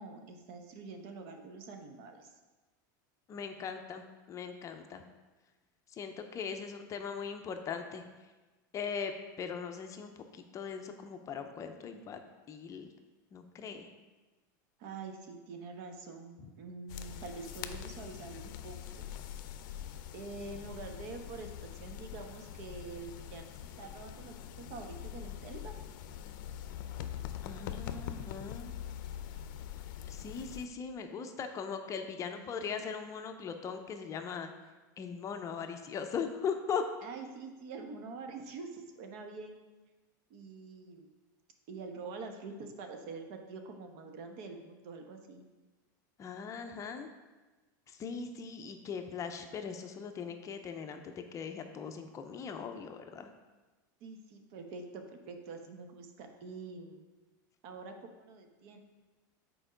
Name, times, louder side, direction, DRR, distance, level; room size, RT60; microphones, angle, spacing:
voice 1, 0.0-2.3 14.8-19.0 20.1-23.4 23.8-25.7 32.3-32.8 37.0-39.6 40.3-41.1 41.7-45.4 54.0-57.0 57.6-58.8, right 4 dB, 60° right, 5 dB, 1.1 m, -46 dB
voice 2, 3.3-5.0 5.9-8.0 8.7-9.1 9.4-12.2 12.5-12.9 13.3-13.9 27.4-28.7 30.1-34.5 35.0-36.8 46.2-47.1 47.9-53.3, left 6 dB, 30° left, 6 dB, 0.6 m, -39 dB
sound 1, 16.9-30.7, left 10 dB, 70° left, 0.5 m, -43 dB
6.8 x 4.5 x 5.1 m, 1.2 s
supercardioid pair, 130°, 11 cm